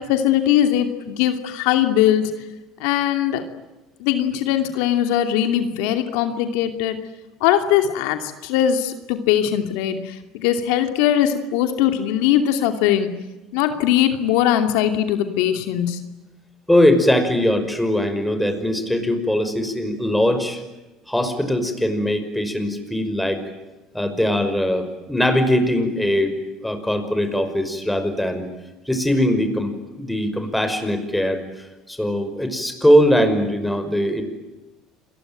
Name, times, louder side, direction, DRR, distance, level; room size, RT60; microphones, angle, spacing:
voice 1, 0.0-2.3 2.8-3.4 4.0-7.0 7.4-13.1 13.5-16.0, left 11 dB, 80° left, 7 dB, 2.7 m, -20 dB
voice 2, 16.7-20.6 21.1-23.4 23.9-28.5 28.9-34.2, equal, 5° left, 8 dB, 5.6 m, -21 dB
28.5 x 22.0 x 9.1 m, 1.1 s
supercardioid pair, 100°, 0 cm